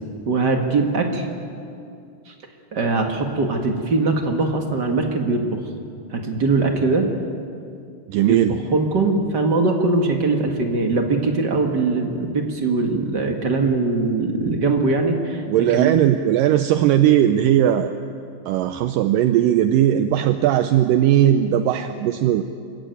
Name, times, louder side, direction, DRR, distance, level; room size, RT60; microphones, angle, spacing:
voice 1, 0.2-1.3 2.3-2.4 2.7-5.6 6.1-7.1 8.2-8.4 8.7-15.4 15.7-15.9, right 3 dB, 40° right, 3 dB, 1.6 m, -21 dB
voice 2, 8.1-8.6 15.5-17.9 18.5-22.5, right 11 dB, 80° right, 9 dB, 2.2 m, -18 dB
25.0 x 15.0 x 9.2 m, 2.4 s
omnidirectional pair, 4.1 m